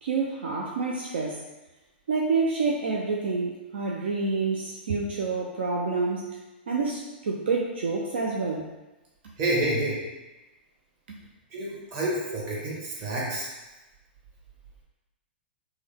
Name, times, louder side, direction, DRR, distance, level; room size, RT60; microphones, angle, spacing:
voice 1, 0.0-1.4 2.1-6.3 6.7-8.7, right 4 dB, 75° right, -1 dB, 0.4 m, -28 dB
voice 2, 9.4-10.0 11.5-13.5, right 1 dB, 40° right, -4 dB, 1.3 m, -28 dB
3.6 x 2.1 x 3.4 m, 1.1 s
hypercardioid pair, 120°, 6 cm